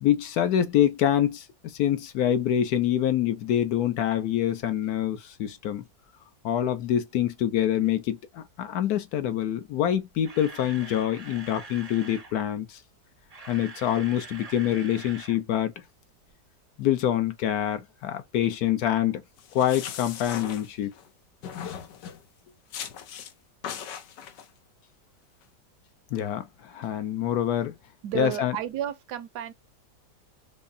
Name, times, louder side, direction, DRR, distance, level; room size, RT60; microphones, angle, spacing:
voice 1, 0.0-5.8 6.4-12.8 13.5-15.7 16.8-19.2 19.5-20.9 26.1-27.7 28.1-28.6, left 11 dB, 70° left, 1.1 m, -26 dB
Camera, 10.1-12.3 13.1-15.4 15.7-15.8 16.3-16.4, right 3 dB, 45° right, 0.5 m, -44 dB
sound 1, 19.4-21.1 21.4-22.2 22.7-23.3 23.6-24.5, left 8 dB, 90° left, 1.3 m, -38 dB
voice 2, 28.0-29.5, right 12 dB, 75° right, 1.2 m, -32 dB
5.5 x 2.0 x 2.5 m
omnidirectional pair, 1.8 m